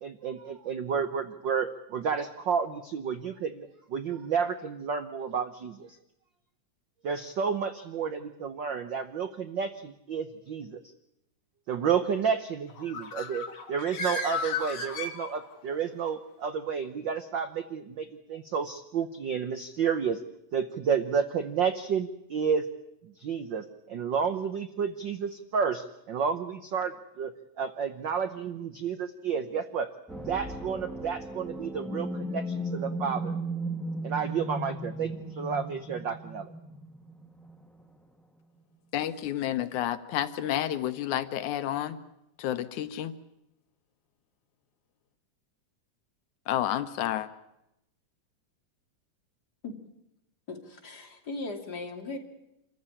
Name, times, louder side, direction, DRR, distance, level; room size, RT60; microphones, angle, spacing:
voice 1, 0.0-6.0 7.0-10.8 11.7-20.2 20.5-22.7 23.0-27.3 27.6-33.3 34.0-36.5, right 6 dB, 85° right, 9 dB, 1.0 m, -31 dB
Bird, 12.7-15.8, left 3 dB, 60° left, 3.5 m, -34 dB
sound 1, 30.1-37.8, right 1 dB, ahead, 0.4 m, -36 dB
voice 2, 38.9-42.0 42.4-43.2 46.5-47.3, left 12 dB, 80° left, 11 dB, 2.4 m, -30 dB
voice 3, 50.5-52.2, left 3 dB, 35° left, 2 dB, 3.1 m, -38 dB
27.0 x 15.0 x 9.8 m, 0.86 s
omnidirectional pair, 3.5 m